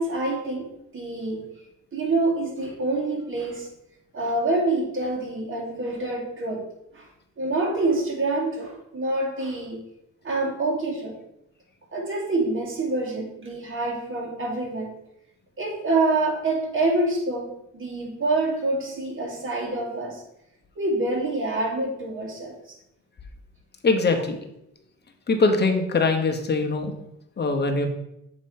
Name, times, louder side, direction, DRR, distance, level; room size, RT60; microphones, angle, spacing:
voice 1, 0.0-1.4 1.9-3.7 4.1-6.6 6.9-7.1 7.4-9.8 10.2-11.2 11.9-14.9 15.6-20.2 20.8-22.5, right 2 dB, 45° right, -1 dB, 2.1 m, -26 dB
voice 2, 23.8-24.4 25.3-26.9 27.4-27.9, left 3 dB, 35° left, 4 dB, 1.0 m, -22 dB
7.4 x 3.1 x 4.2 m, 0.80 s
cardioid pair, 90°, 30 cm